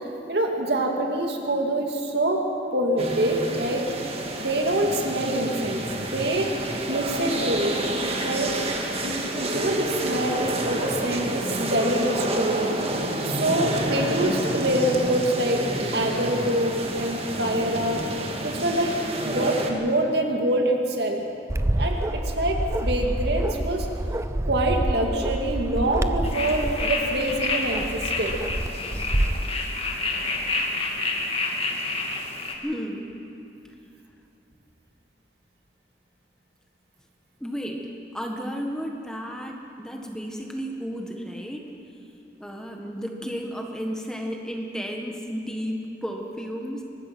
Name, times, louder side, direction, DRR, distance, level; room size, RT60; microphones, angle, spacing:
voice 1, 0.0-2.4 2.7-3.9 4.4-6.5 6.9-7.8 8.2-8.6 9.0-12.8 13.2-15.6 15.9-18.0 18.4-18.9 19.2-21.2 21.7-23.9 24.5-28.4, right 1 dB, 65° right, 2 dB, 2.5 m, -25 dB
sound 1, 3.0-19.7, right 1 dB, 35° right, 1.9 m, -29 dB
Bark, 21.5-29.5, right 1 dB, 15° right, 0.5 m, -27 dB
sound 2, 26.2-32.5, left 3 dB, 35° left, 2.2 m, -29 dB
voice 2, 32.6-33.1 37.4-37.9 38.1-41.7 42.4-46.8, equal, 5° left, 1 dB, 1.6 m, -33 dB
24.0 x 19.5 x 6.1 m, 2.8 s
head